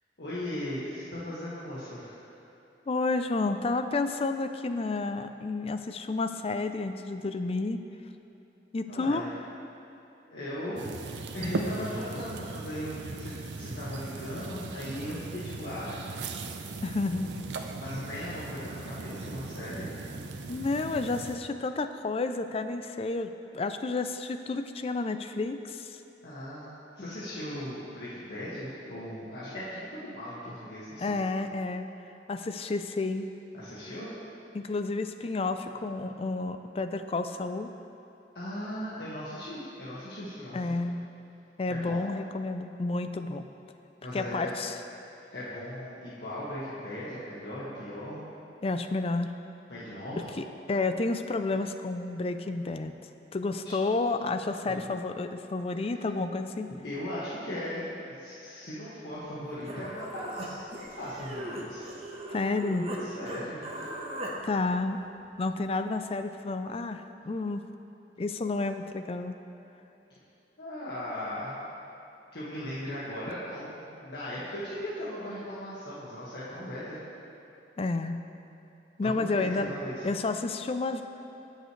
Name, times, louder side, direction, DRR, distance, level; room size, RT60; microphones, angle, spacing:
voice 1, 0.2-2.3 8.9-9.3 10.3-10.9 11.3-16.0 17.8-20.0 26.2-31.2 33.5-34.1 38.3-40.7 41.7-42.0 44.0-44.6 45.3-48.2 49.7-50.3 53.7-53.8 54.6-54.9 55.7-56.1 56.6-61.9 63.0-64.0 70.6-71.7 72.3-77.0 79.0-80.0, left 1 dB, 70° left, -10 dB, 1.7 m, -38 dB
voice 2, 2.9-7.8 8.7-9.3 16.8-17.4 20.5-26.0 27.0-27.1 31.0-31.9 32.3-33.3 34.5-37.7 40.5-41.0 41.6-43.4 44.1-44.7 48.6-49.3 50.4-52.9 53.3-56.7 62.3-62.9 64.4-65.0 65.4-67.6 68.2-69.4 77.8-78.2 79.0-79.7 80.0-81.0, left 3 dB, 35° left, 8 dB, 0.4 m, -30 dB
sound 1, 10.8-21.4, right 3 dB, 80° right, 0.6 m, -38 dB
Human voice, 59.3-59.4 59.6-63.0 63.3-64.3, equal, 35° right, 1.1 m, -39 dB
18.0 x 6.6 x 3.2 m, 3.0 s
head